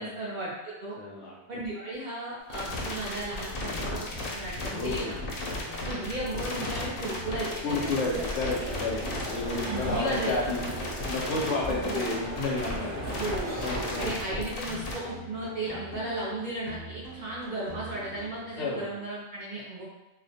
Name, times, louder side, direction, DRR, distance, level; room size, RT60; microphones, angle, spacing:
voice 1, 0.0-1.0 1.5-4.1 4.3-5.2 5.9-8.5 9.6-10.3 11.7-12.2 13.1-13.6 14.0-19.8, right 2 dB, 60° right, -7 dB, 0.5 m, -35 dB
voice 2, 1.0-1.3 4.6-5.2 7.6-9.0 9.3-13.1 13.6-14.4 15.9-16.0 18.5-18.9, left 3 dB, 85° left, -2 dB, 1.0 m, -32 dB
sound 1, 2.5-14.9, left 2 dB, 60° left, 0.7 m, -35 dB
sound 2, 2.7-18.7, equal, 25° left, 0.4 m, -45 dB
sound 3, 8.1-14.1, right 1 dB, 40° right, 0.8 m, -37 dB
2.4 x 2.0 x 2.7 m, 0.98 s
omnidirectional pair, 1.2 m